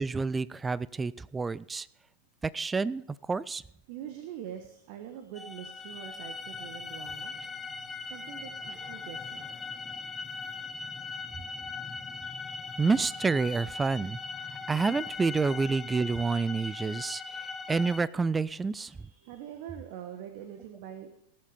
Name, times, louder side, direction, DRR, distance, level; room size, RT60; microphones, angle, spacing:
voice 1, 0.0-1.9 2.4-3.6 12.8-14.2 14.7-19.0, right 4 dB, 15° right, 20 dB, 0.4 m, -29 dB
voice 2, 3.9-10.1 14.6-14.8 18.6-21.2, right 10 dB, 45° right, 8 dB, 1.2 m, -45 dB
sound 1, 5.3-18.0, left 4 dB, 10° left, 0.7 m, -40 dB
17.5 x 7.3 x 5.2 m, 0.74 s
figure-of-eight pair, 90°, 0 cm